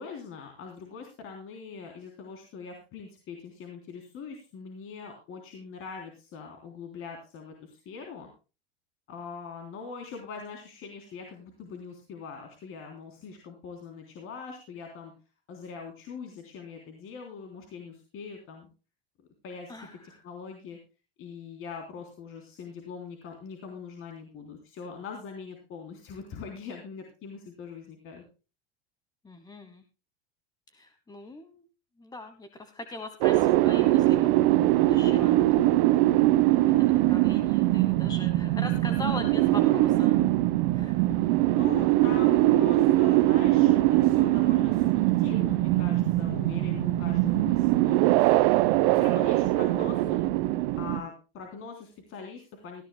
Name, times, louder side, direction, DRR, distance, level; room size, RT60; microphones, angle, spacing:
voice 1, 0.0-8.3 9.1-15.1 15.5-18.7 19.4-20.8 21.2-28.2 41.5-48.3 48.9-50.3 50.8-52.8, left 5 dB, 45° left, 2 dB, 3.5 m, -42 dB
voice 2, 29.2-29.8 30.7-31.6 32.0-35.4 36.8-40.1 40.7-41.0, left 2 dB, 15° left, 9 dB, 1.2 m, -41 dB
sound 1, 33.2-51.0, right 16 dB, 65° right, 1.2 m, -22 dB
18.5 x 14.0 x 2.2 m, 0.32 s
supercardioid pair, 125°, 30 cm